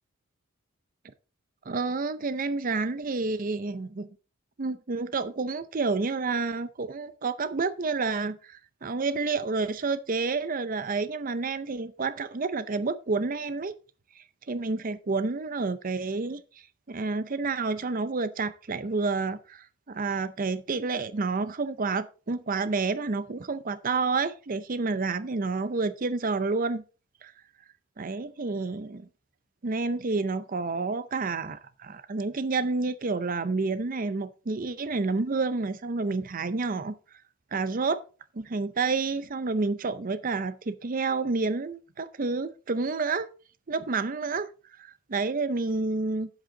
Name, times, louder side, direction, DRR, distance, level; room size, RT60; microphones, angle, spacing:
voice 1, 1.7-4.1 4.6-13.7 14.2-16.4 16.9-26.8 27.2-27.3 28.0-29.1 29.6-36.9 37.5-38.0 38.3-43.3 43.7-44.5 44.8-46.3, right 4 dB, 40° right, 0.6 m, -29 dB
10.5 x 7.7 x 3.9 m
head